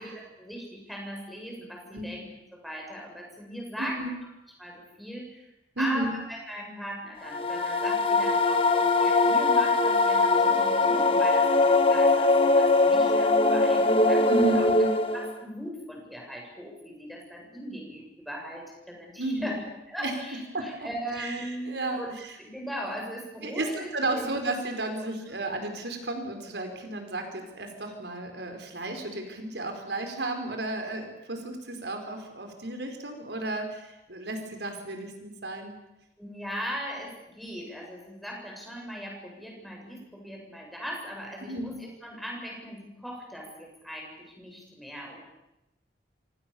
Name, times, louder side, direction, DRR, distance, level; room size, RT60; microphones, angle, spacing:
voice 1, 0.0-2.3 2.5-4.0 4.6-5.5 5.8-14.7 15.1-19.6 19.9-22.1 22.4-24.3 25.0-25.1 36.2-45.2, equal, ahead, -1 dB, 7.9 m, -39 dB
voice 2, 3.8-4.1 5.7-6.1 14.3-14.9 19.2-19.6 20.0-20.1 20.5-20.9 21.2-22.4 23.4-35.8 41.4-41.7, right 2 dB, 75° right, 5 dB, 5.0 m, -33 dB
sound 1, 7.3-15.4, left 3 dB, 30° left, 1.8 m, -22 dB
29.0 x 26.5 x 7.2 m, 0.92 s
head